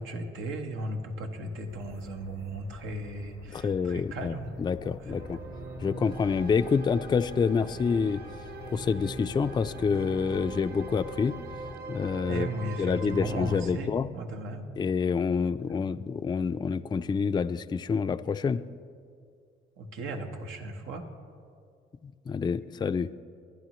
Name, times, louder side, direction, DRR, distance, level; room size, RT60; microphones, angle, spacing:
voice 1, 0.0-4.5 4.8-5.2 12.3-14.7 19.8-21.1, right 1 dB, 90° right, 4 dB, 1.3 m, -36 dB
sound 1, 1.7-11.7, left 9 dB, 75° left, 0.6 m, -49 dB
voice 2, 3.5-4.3 4.6-5.4 5.8-8.2 8.7-11.4 11.9-12.5 12.8-14.1 14.8-18.6 22.0-23.1, left 5 dB, 20° left, 11 dB, 0.3 m, -27 dB
sound 2, 5.1-13.7, right 3 dB, 50° right, 1.3 m, -41 dB
23.5 x 9.7 x 3.1 m, 2.2 s
cardioid pair, 90°, 20 cm